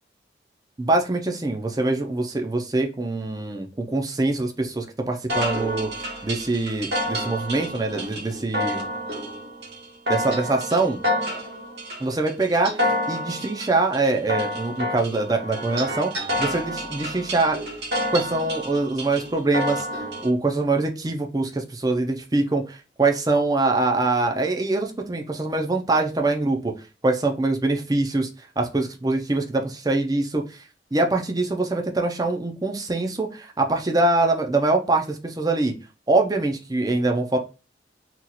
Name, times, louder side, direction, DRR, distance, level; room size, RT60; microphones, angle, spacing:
voice 1, 0.8-5.9 6.2-8.8 10.1-11.0 12.0-12.7 13.1-17.6 18.1-19.9 20.2-26.7 27.0-28.3 28.6-30.6 30.9-35.7 36.1-37.4, right 2 dB, 20° right, 3 dB, 0.5 m, -23 dB
sound 1, 5.3-20.3, equal, 70° right, 1.2 m, -29 dB
2.9 x 2.4 x 3.9 m, 0.32 s
head